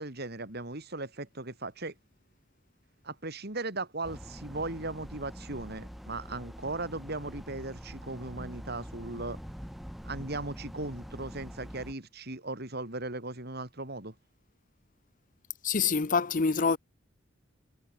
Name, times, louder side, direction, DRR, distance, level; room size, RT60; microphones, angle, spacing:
voice 1, 0.0-1.9 3.0-9.4 10.0-14.1, right 2 dB, 55° right, 3.4 m, -37 dB
sound 1, 4.0-11.9, equal, ahead, 1.4 m, -44 dB
voice 2, 15.6-16.8, left 5 dB, 40° left, 0.7 m, -26 dB
head